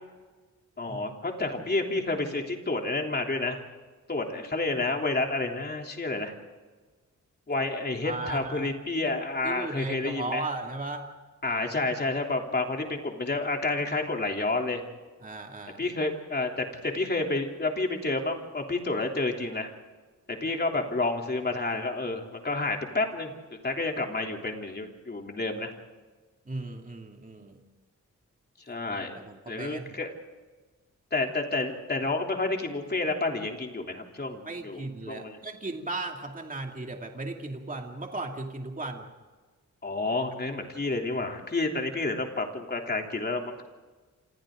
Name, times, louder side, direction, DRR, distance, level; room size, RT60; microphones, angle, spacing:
voice 1, 0.8-3.6 4.1-6.3 7.5-10.4 11.4-14.8 15.8-19.7 20.3-23.3 23.6-25.7 28.7-29.2 29.5-30.1 31.1-35.4 39.8-43.6, left 2 dB, 30° left, 2 dB, 3.3 m, -30 dB
voice 2, 8.0-8.7 9.4-11.1 15.2-15.9 26.5-27.6 29.2-30.0 34.4-39.1, right 2 dB, 25° right, 2 dB, 2.5 m, -36 dB
28.0 x 27.0 x 3.9 m, 1.3 s
wide cardioid pair, 140°, 31 cm